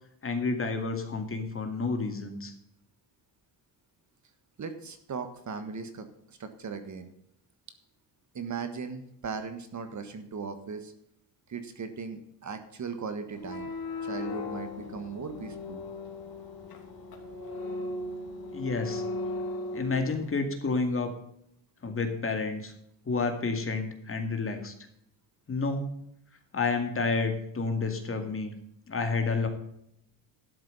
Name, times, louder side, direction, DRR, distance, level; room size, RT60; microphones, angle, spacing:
voice 1, 0.2-2.5 18.5-19.0 19.7-21.1 21.8-22.7 23.0-24.7 25.5-25.9 26.5-28.5 28.9-29.5, left 4 dB, 30° left, 6 dB, 2.2 m, -30 dB
voice 2, 4.6-7.1 8.3-10.9 11.5-13.7 14.0-15.8, right 5 dB, 40° right, 9 dB, 1.5 m, -38 dB
sound 1, 13.3-20.3, left 2 dB, 55° left, 2.9 m, -37 dB
12.5 x 7.3 x 5.4 m, 0.75 s
cardioid pair, 115°, 44 cm